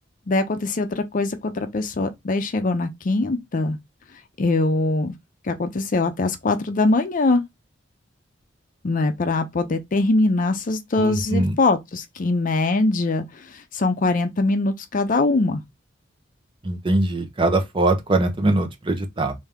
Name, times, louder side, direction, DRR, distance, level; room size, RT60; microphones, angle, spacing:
voice 1, 0.3-3.8 4.4-5.1 5.4-7.4 8.8-13.2 13.5-15.6, left 2 dB, 45° left, 0.5 m, -22 dB
voice 2, 11.0-11.6 16.6-19.3, right 2 dB, 25° right, 0.7 m, -22 dB
3.4 x 2.6 x 3.4 m
head